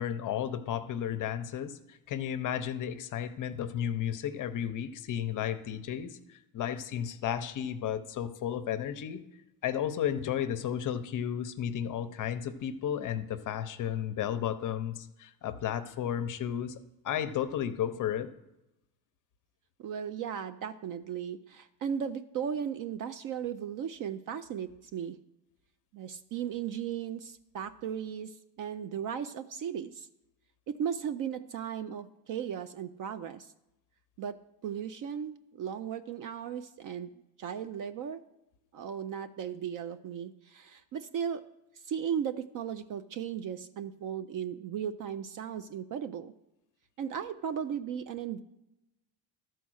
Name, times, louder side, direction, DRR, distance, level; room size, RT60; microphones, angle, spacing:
voice 1, 0.0-9.2 9.6-16.8 17.0-18.3, left 9 dB, 40° left, 10 dB, 0.6 m, -33 dB
voice 2, 19.8-25.2 25.9-30.1 30.7-33.5 34.2-34.4 34.6-37.1 37.4-38.2 38.7-41.4 41.8-46.3 47.0-48.4, right 8 dB, 45° right, 12 dB, 0.4 m, -36 dB
12.5 x 4.6 x 6.2 m, 0.92 s
cardioid pair, 135°, 49 cm